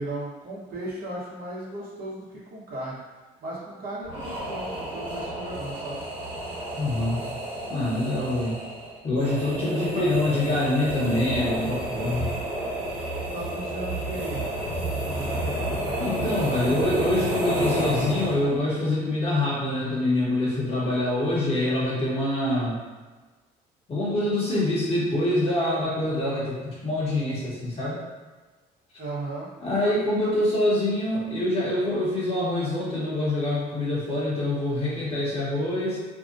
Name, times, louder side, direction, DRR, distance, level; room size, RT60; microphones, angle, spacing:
voice 1, 0.0-3.0 3.4-6.0 9.5-10.0 13.3-14.4 14.9-15.6 16.1-16.6 29.0-29.5, right 1 dB, 60° right, -6 dB, 1.0 m, -36 dB
sound 1, 4.0-18.6, right 1 dB, 30° right, 1.3 m, -30 dB
voice 2, 6.8-7.2 7.7-8.6 9.0-12.2 16.0-22.8 23.9-28.0 29.6-36.0, left 1 dB, 35° left, -7 dB, 1.1 m, -25 dB
2.8 x 2.4 x 2.5 m, 1.3 s
cardioid pair, 110°, 17 cm